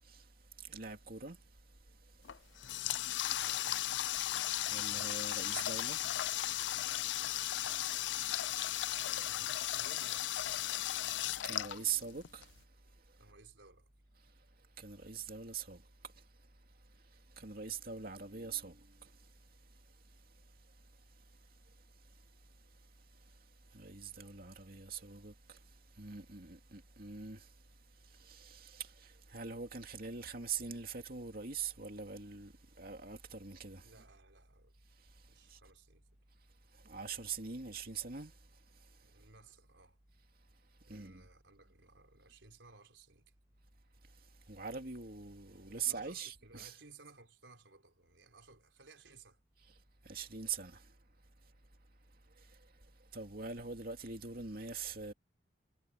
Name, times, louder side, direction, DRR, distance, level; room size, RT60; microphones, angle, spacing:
voice 1, 0.7-1.4 4.7-6.0 11.4-12.5 14.8-15.8 17.4-18.8 23.7-25.3 26.0-27.4 28.3-28.9 29.3-32.5 32.8-33.8 36.9-38.3 40.9-41.2 44.5-46.7 50.1-50.8 53.1-55.1, right 6 dB, 55° right, 2.6 m, -42 dB
Water tap faucet, 2.2-12.4, left 14 dB, 75° left, 0.4 m, -36 dB
voice 2, 3.4-3.9 9.2-10.4 13.2-13.9 33.8-34.8 35.3-36.1 39.0-40.0 40.9-43.3 45.5-49.4, right 4 dB, 85° right, 4.1 m, -59 dB
head